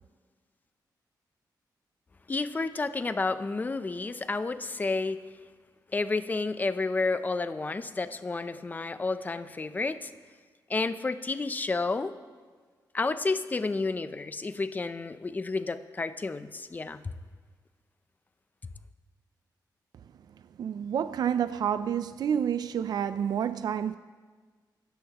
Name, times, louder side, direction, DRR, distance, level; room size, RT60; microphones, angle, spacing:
voice 1, 2.3-5.2 5.9-10.1 10.7-12.1 12.9-17.1, left 3 dB, 25° left, 0.5 m, -30 dB
voice 2, 20.6-24.0, right 8 dB, 65° right, 0.4 m, -29 dB
23.5 x 12.5 x 3.0 m
wide cardioid pair, 145°, 7 cm